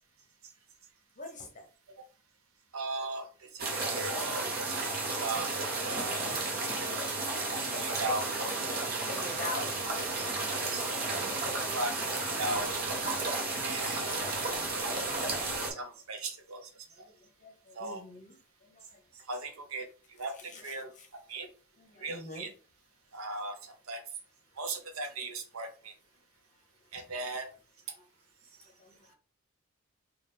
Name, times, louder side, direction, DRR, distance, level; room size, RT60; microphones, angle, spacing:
voice 1, 1.2-1.7 9.0-9.8 11.4-11.5 14.1-14.7 17.2-18.3 18.7-19.0 20.5-21.1 21.8-22.5 28.8-29.1, left 2 dB, 35° left, 2 dB, 0.9 m, -44 dB
voice 2, 2.7-6.9 7.7-8.3 10.1-10.8 11.4-12.8 13.6-14.4 15.7-16.7 17.0-17.1 17.7-18.0 19.3-20.9 21.3-21.5 22.0-22.5 23.1-24.0 24.6-25.9 26.9-27.5, right 2 dB, 85° right, 5 dB, 0.8 m, -38 dB
sound 1, 3.6-15.7, right 2 dB, 45° right, 0.9 m, -33 dB
4.0 x 2.4 x 3.4 m, 0.38 s
head